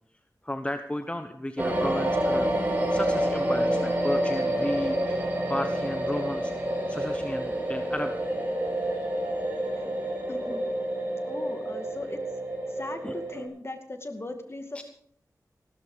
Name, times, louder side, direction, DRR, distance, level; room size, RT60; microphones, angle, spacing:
voice 1, 0.4-2.5 2.9-6.5 6.9-8.2 13.0-13.1 14.7-14.8, left 1 dB, 15° left, 8 dB, 1.0 m, -34 dB
sound 1, 1.6-13.5, right 1 dB, 25° right, 4.5 m, -28 dB
voice 2, 10.3-10.6 11.3-12.2 12.7-14.8, left 2 dB, 40° left, 6 dB, 2.2 m, -38 dB
15.5 x 13.0 x 5.0 m, 0.63 s
wide cardioid pair, 65°, 7 cm